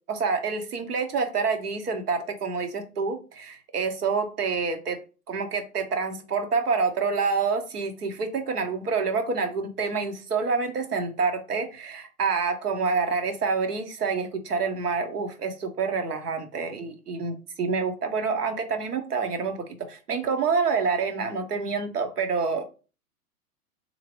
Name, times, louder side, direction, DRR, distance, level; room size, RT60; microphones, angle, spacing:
voice 1, 0.1-5.0 5.3-22.6, right 5 dB, 85° right, 6 dB, 1.0 m, -27 dB
3.8 x 2.9 x 2.9 m, 0.34 s
hypercardioid pair, 115°, 45 cm